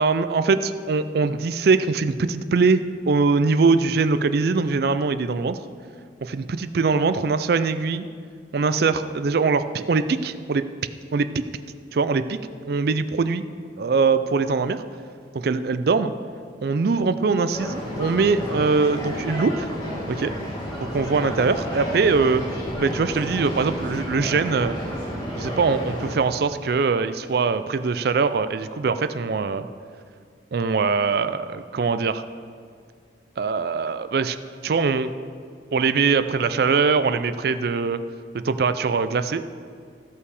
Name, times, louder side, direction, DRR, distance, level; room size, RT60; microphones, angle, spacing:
voice 1, 0.0-5.6 6.2-8.1 8.5-10.6 11.1-11.4 11.9-12.4 12.7-13.4 13.8-14.8 15.3-16.1 16.6-19.7 20.1-20.3 20.9-22.4 22.8-24.8 25.4-29.7 30.5-32.2 33.4-34.4 34.6-35.1 35.7-38.0 38.3-39.4, right 4 dB, 55° right, 12 dB, 0.4 m, -22 dB
sound 1, 17.5-26.2, equal, 20° left, 1.8 m, -31 dB
15.0 x 5.5 x 4.8 m, 2.1 s
head